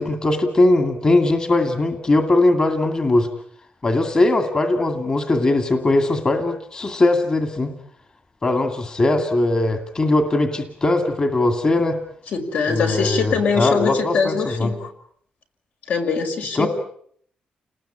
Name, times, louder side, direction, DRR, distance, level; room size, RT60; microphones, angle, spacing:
voice 1, 0.0-3.3 3.8-7.7 8.4-12.0 12.7-14.7 16.6-16.7, left 2 dB, 25° left, 6 dB, 2.2 m, -20 dB
voice 2, 12.3-14.9 15.9-16.7, left 5 dB, 70° left, 5 dB, 5.7 m, -22 dB
29.5 x 20.0 x 8.8 m, 0.64 s
wide cardioid pair, 170°, 3 cm